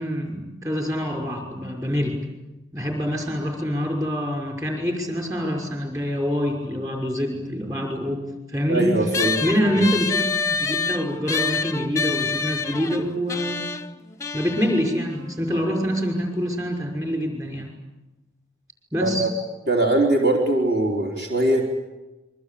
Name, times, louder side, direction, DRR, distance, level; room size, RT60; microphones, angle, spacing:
voice 1, 0.0-2.2 2.7-8.2 8.5-8.9 9.4-10.3 10.6-13.7 14.3-17.7 18.9-19.3, equal, 15° right, 1 dB, 5.7 m, -25 dB
voice 2, 8.7-9.4 19.0-19.3 19.7-21.8, right 1 dB, 50° right, 0 dB, 3.9 m, -21 dB
sound 1, 9.1-15.9, left 4 dB, 15° left, 0.8 m, -28 dB
27.5 x 23.5 x 8.5 m, 1.0 s
head